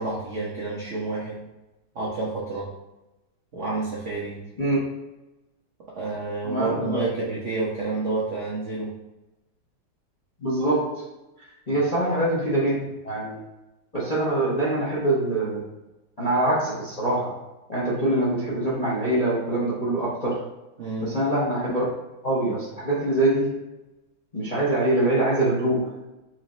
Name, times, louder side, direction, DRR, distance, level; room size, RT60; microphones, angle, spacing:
voice 1, 0.0-1.4 1.9-2.7 3.5-4.5 5.9-9.0 20.8-21.2, right 3 dB, 70° right, -5 dB, 0.7 m, -29 dB
voice 2, 6.4-7.0 10.4-11.0 11.4-12.8 13.0-13.4 13.9-15.7 16.2-17.3 17.7-20.4 21.0-21.8 22.2-23.6 24.3-26.0, right 1 dB, 40° left, -8 dB, 0.6 m, -24 dB
4.7 x 2.9 x 2.6 m, 1.0 s
omnidirectional pair, 2.3 m